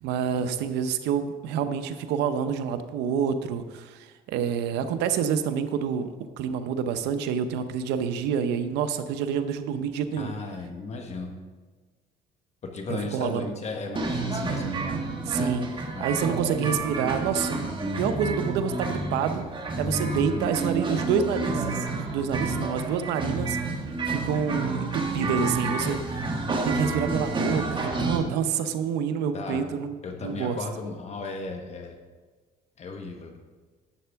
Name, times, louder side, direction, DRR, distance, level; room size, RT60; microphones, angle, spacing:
voice 1, 0.0-10.3 12.9-13.5 15.3-19.4 19.8-26.0 26.6-30.6, right 7 dB, 90° right, 10 dB, 0.7 m, -28 dB
voice 2, 10.2-11.3 12.6-14.7 15.9-16.3 25.2-26.0 29.3-29.6 30.0-32.0 32.8-33.3, left 3 dB, 40° left, 3 dB, 1.1 m, -35 dB
sound 1, 14.0-28.2, right 3 dB, 30° right, 1.4 m, -29 dB
11.5 x 7.6 x 3.5 m, 1.4 s
cardioid pair, 110°, 17 cm